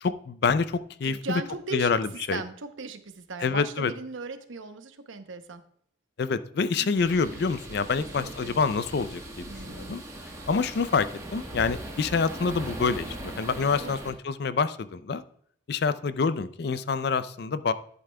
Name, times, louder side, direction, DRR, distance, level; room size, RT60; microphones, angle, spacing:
voice 1, 0.0-1.4 1.7-2.4 3.4-3.9 6.2-10.0 10.5-15.2 15.7-17.7, left 5 dB, 55° left, 14 dB, 0.4 m, -27 dB
voice 2, 1.0-5.6 6.8-6.9 8.0-8.6 9.5-10.0 13.8-14.0, right 4 dB, 80° right, 9 dB, 0.8 m, -38 dB
sound 1, 7.0-14.1, right 1 dB, 15° right, 1.2 m, -40 dB
11.0 x 8.4 x 2.2 m, 0.64 s
head